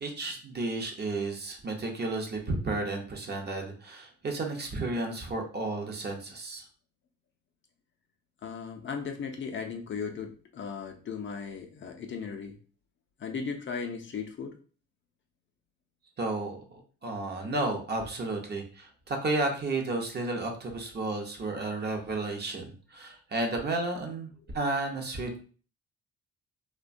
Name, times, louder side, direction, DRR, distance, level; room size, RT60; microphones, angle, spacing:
voice 1, 0.0-6.7 16.2-25.4, right 2 dB, 35° right, 2 dB, 0.6 m, -32 dB
voice 2, 8.4-12.6 13.2-14.6, left 6 dB, 40° left, 3 dB, 0.5 m, -37 dB
2.6 x 2.2 x 2.5 m, 0.39 s
cardioid pair, 90°, 30 cm